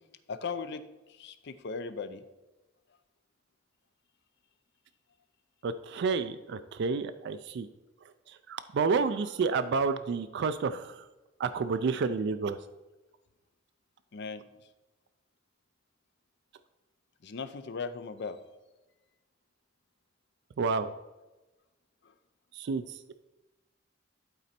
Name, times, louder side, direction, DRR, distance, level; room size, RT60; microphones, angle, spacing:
voice 1, 0.3-0.8 1.2-2.2 14.1-14.4 17.2-18.4, left 5 dB, 60° left, 11 dB, 0.5 m, -37 dB
voice 2, 5.6-7.7 8.3-11.0 11.4-12.6 20.6-20.9 22.5-23.1, right 4 dB, 60° right, 10 dB, 0.4 m, -30 dB
11.5 x 4.0 x 4.3 m, 1.1 s
head